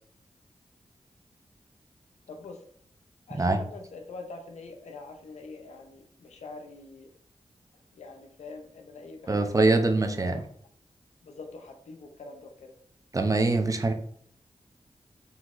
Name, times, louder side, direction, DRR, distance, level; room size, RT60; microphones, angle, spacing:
voice 1, 2.3-2.6 3.3-7.1 7.9-10.4 11.2-12.7, left 3 dB, 90° left, 4 dB, 0.6 m, -45 dB
voice 2, 9.3-10.4 13.1-13.9, right 3 dB, 30° right, 5 dB, 0.5 m, -23 dB
3.8 x 2.8 x 2.5 m, 0.63 s
cardioid pair, 45°, 11 cm